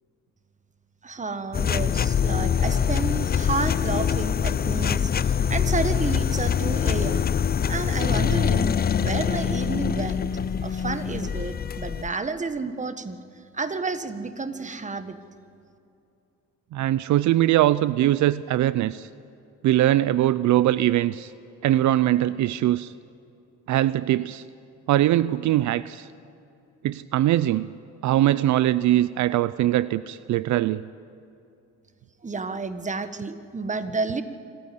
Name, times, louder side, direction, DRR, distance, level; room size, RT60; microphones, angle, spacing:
voice 1, 1.0-7.2 7.7-8.7 9.0-10.2 10.6-13.2 13.5-15.2 32.2-34.2, right 4 dB, 25° right, 10 dB, 1.4 m, -30 dB
sound 1, 1.5-12.1, left 8 dB, 30° left, 0.5 m, -24 dB
voice 2, 16.7-19.1 19.6-21.3 21.6-22.9 23.7-24.4 24.9-26.1 26.8-27.7 28.0-30.9, right 14 dB, 70° right, 16 dB, 0.5 m, -21 dB
25.5 x 15.0 x 8.5 m, 2.7 s
cardioid pair, 90°, 30 cm